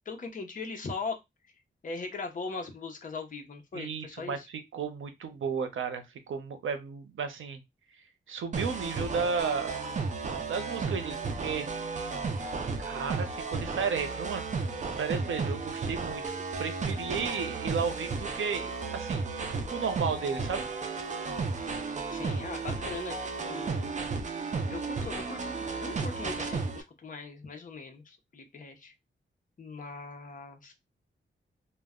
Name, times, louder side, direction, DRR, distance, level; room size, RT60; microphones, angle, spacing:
voice 1, 0.1-1.2 1.8-4.5 22.1-23.9 24.7-28.9 29.6-30.7, left 4 dB, 45° left, 4 dB, 0.6 m, -40 dB
voice 2, 3.7-7.6 8.3-9.8 10.5-11.7 12.8-14.5 15.0-16.2 16.6-20.7, right 6 dB, 85° right, 9 dB, 0.6 m, -33 dB
sound 1, 8.5-26.8, right 4 dB, 40° right, 0.4 m, -34 dB
2.1 x 2.1 x 3.5 m, 0.20 s
wide cardioid pair, 180°, 20 cm